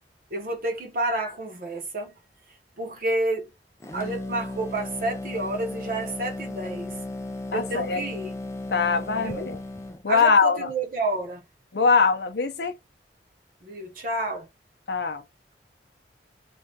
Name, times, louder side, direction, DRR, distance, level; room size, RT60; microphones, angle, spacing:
voice 1, 0.3-2.1 2.8-3.5 3.9-7.0 7.5-8.4 9.2-9.5 10.1-11.4 13.6-14.5, right 2 dB, 50° right, 0.8 m, -30 dB
sound 1, 3.8-10.0, left 2 dB, 15° left, 0.3 m, -35 dB
voice 2, 7.5-8.0 8.7-9.6 10.0-10.7 11.7-12.7 14.9-15.2, left 5 dB, 70° left, 0.6 m, -22 dB
3.3 x 2.3 x 2.7 m
head